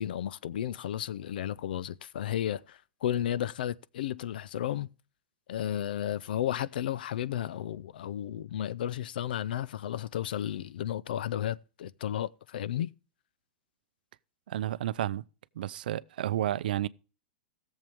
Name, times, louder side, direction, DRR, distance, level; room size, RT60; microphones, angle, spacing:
voice 1, 0.0-4.9 5.5-12.9, left 11 dB, 80° left, 0.5 m, -33 dB
voice 2, 14.5-15.2 15.6-16.9, right 12 dB, 75° right, 0.5 m, -31 dB
17.0 x 7.3 x 3.5 m
hypercardioid pair, 135°, 5 cm